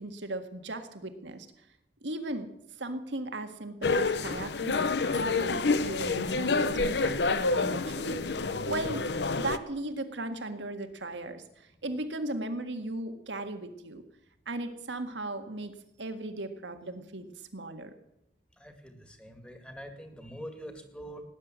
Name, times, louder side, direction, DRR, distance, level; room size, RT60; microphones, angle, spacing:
voice 1, 0.0-1.5 2.0-2.5 2.8-8.4 8.7-14.0 14.4-15.7 16.0-17.9, right 2 dB, 85° right, 7 dB, 1.8 m, -37 dB
sound 1, 3.8-9.6, left 3 dB, 65° left, 0.8 m, -28 dB
voice 2, 18.6-21.2, equal, 5° left, 6 dB, 2.1 m, -44 dB
18.0 x 9.9 x 7.5 m, 0.79 s
head